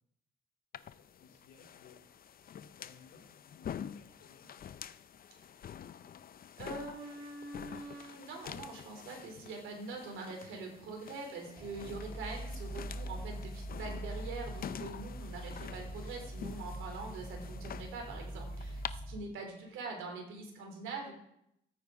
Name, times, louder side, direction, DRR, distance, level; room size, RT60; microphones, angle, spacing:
voice 1, 0.7-2.0 2.4-4.5, left 6 dB, 75° left, -2 dB, 2.5 m, -60 dB
sound 1, 0.7-18.9, left 9 dB, 45° left, 0.6 m, -48 dB
voice 2, 6.6-21.1, right 3 dB, 85° right, 1 dB, 3.2 m, -44 dB
sound 2, 11.6-19.2, right 1 dB, ahead, 0.8 m, -43 dB
13.5 x 8.8 x 4.8 m, 0.78 s
cardioid pair, 90°, 20 cm